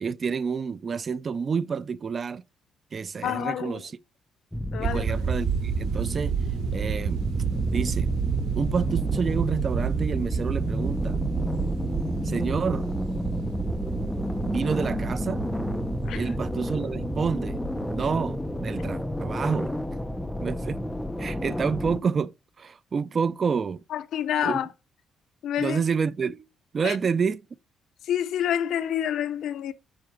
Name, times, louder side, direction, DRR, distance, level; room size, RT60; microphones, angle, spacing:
voice 1, 0.0-2.4 2.9-3.9 4.8-6.3 6.7-7.2 7.7-8.1 8.6-11.2 12.2-12.8 14.4-15.4 16.1-17.6 17.9-19.7 20.4-20.8 21.2-22.3 22.6-23.8 24.4-24.6 25.6-26.4 26.7-27.4, right 6 dB, 35° right, 0.5 m, -28 dB
voice 2, 3.2-3.8 4.7-5.0 16.0-16.2 23.9-24.7 25.4-25.8 26.8-27.0 28.0-29.7, left 10 dB, 70° left, 0.7 m, -28 dB
sound 1, 4.5-22.0, left 1 dB, 5° left, 0.8 m, -31 dB
sound 2, 4.8-19.4, right 8 dB, 85° right, 2.6 m, -31 dB
7.8 x 4.8 x 6.8 m
cardioid pair, 130°, 0 cm